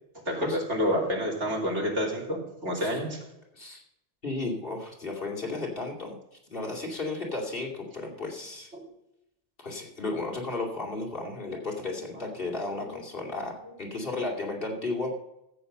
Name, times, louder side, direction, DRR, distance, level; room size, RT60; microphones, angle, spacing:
voice 1, 0.3-3.2 11.5-11.6 11.9-12.1 12.7-12.8, equal, 85° right, -2 dB, 3.6 m, -29 dB
voice 2, 4.2-6.1 6.5-8.7 9.6-15.1, left 2 dB, 55° left, -2 dB, 2.9 m, -34 dB
14.0 x 8.1 x 5.4 m, 0.87 s
omnidirectional pair, 1.2 m